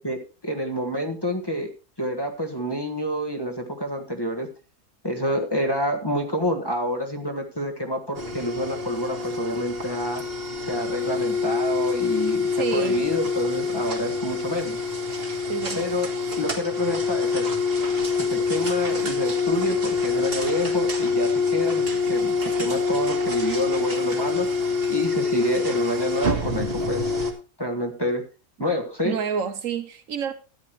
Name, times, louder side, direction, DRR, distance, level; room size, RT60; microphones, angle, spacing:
voice 1, 0.0-1.7 2.0-4.5 5.0-10.2 10.6-14.8 15.7-16.1 16.4-17.6 18.2-24.5 24.9-27.2 27.6-28.3 28.6-29.2, equal, 15° left, 1.4 m, -28 dB
sound 1, 8.1-27.3, left 4 dB, 40° right, 1.9 m, -26 dB
voice 2, 12.5-13.0 15.4-15.8 29.0-30.3, right 7 dB, 65° right, 1.1 m, -28 dB
13.5 x 9.7 x 3.1 m
omnidirectional pair, 1.5 m